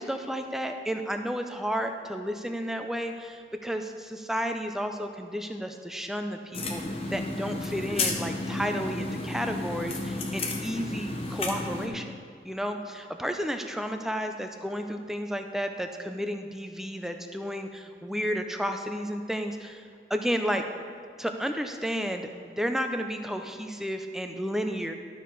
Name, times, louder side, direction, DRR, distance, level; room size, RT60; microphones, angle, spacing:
voice 1, 0.0-6.8 7.1-12.2 12.4-20.6 21.2-24.9, equal, ahead, 5 dB, 0.4 m, -32 dB
sound 1, 6.5-11.9, left 2 dB, 35° left, 0.8 m, -32 dB
12.0 x 6.5 x 3.9 m, 2.3 s
head